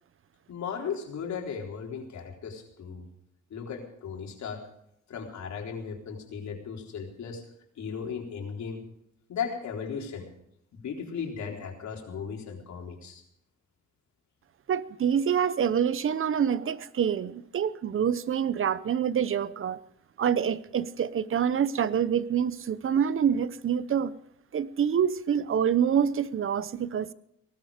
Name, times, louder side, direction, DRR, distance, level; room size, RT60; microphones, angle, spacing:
voice 1, 0.5-3.0 3.5-4.6 5.1-7.4 7.8-8.8 9.3-10.3 10.7-13.2, left 6 dB, 65° left, 1 dB, 4.1 m, -36 dB
voice 2, 14.7-19.8 20.2-24.1 24.5-27.1, right 8 dB, 45° right, 17 dB, 0.8 m, -26 dB
19.0 x 13.0 x 5.1 m, 0.74 s
cardioid pair, 90°, 30 cm